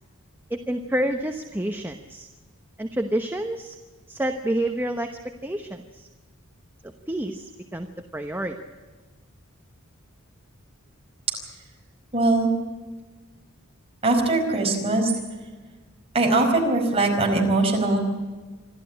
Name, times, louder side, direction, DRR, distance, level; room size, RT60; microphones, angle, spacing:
voice 1, 0.5-2.3 2.8-3.8 4.1-6.1 6.8-8.6, right 1 dB, 10° right, 5 dB, 1.0 m, -29 dB
voice 2, 12.1-12.5 14.0-15.1 16.1-18.0, right 2 dB, 25° right, 1 dB, 4.8 m, -21 dB
27.0 x 12.5 x 8.7 m, 1.3 s
head